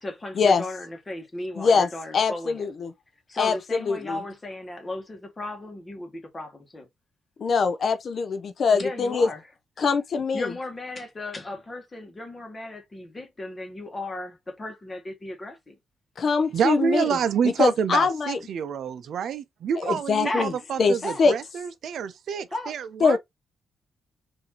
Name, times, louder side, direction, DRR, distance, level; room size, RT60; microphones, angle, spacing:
voice 1, 0.0-2.7 3.3-6.9 8.7-9.4 10.3-15.8 20.2-20.5 21.0-21.2 22.5-22.7, left 2 dB, 25° left, 1.2 m, -35 dB
voice 2, 1.6-1.9 2.1-2.9 3.4-4.2 7.4-9.3 9.8-10.5 16.2-17.0 17.6-18.4 19.8-20.5 20.8-21.3 23.0-23.2, left 5 dB, 55° left, 0.4 m, -23 dB
voice 3, 16.5-23.2, right 7 dB, 70° right, 0.5 m, -27 dB
4.0 x 2.7 x 2.8 m
cardioid pair, 105°, 0 cm